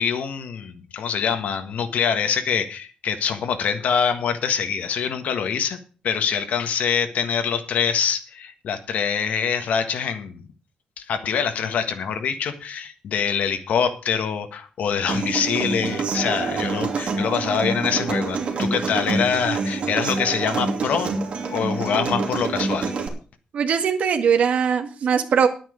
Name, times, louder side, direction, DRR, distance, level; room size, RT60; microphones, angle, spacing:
voice 1, 0.0-5.8 6.0-10.5 11.0-21.1 21.5-22.9, left 7 dB, 75° left, 8 dB, 1.5 m, -24 dB
Human voice / Acoustic guitar, 15.1-23.1, right 4 dB, 50° right, 2.8 m, -26 dB
voice 2, 23.5-25.5, right 7 dB, 65° right, 4 dB, 1.9 m, -20 dB
11.0 x 8.9 x 6.4 m, 0.37 s
wide cardioid pair, 150°, 3 cm